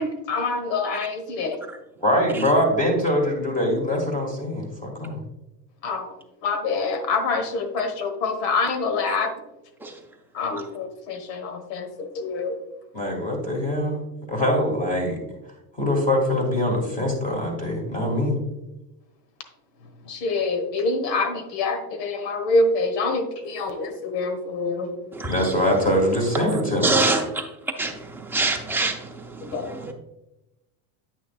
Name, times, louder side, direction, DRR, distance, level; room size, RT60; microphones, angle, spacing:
voice 1, 0.0-1.6 5.8-6.1 6.4-9.3 10.3-12.6 20.0-24.9 29.4-29.9, left 3 dB, 80° left, 7 dB, 1.4 m, -26 dB
voice 2, 2.0-5.2 12.9-14.0 14.3-15.2 15.8-18.4 25.3-27.0 29.8-29.9, left 1 dB, 15° left, 1 dB, 1.8 m, -23 dB
voice 3, 26.5-27.4 27.8-29.9, right 3 dB, 5° right, 1 dB, 0.6 m, -26 dB
9.1 x 6.3 x 2.3 m, 0.94 s
supercardioid pair, 145°, 48 cm